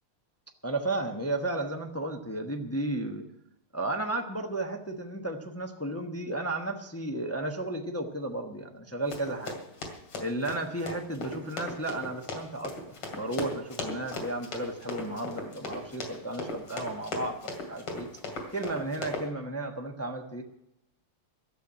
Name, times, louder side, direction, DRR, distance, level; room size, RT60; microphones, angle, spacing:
voice 1, 0.6-3.2 3.7-9.6 10.2-18.1 18.5-20.4, right 2 dB, 20° left, 3 dB, 0.4 m, -33 dB
Run, 9.1-19.3, left 2 dB, 85° left, 3.3 m, -38 dB
12.5 x 7.7 x 9.6 m, 0.81 s
omnidirectional pair, 2.4 m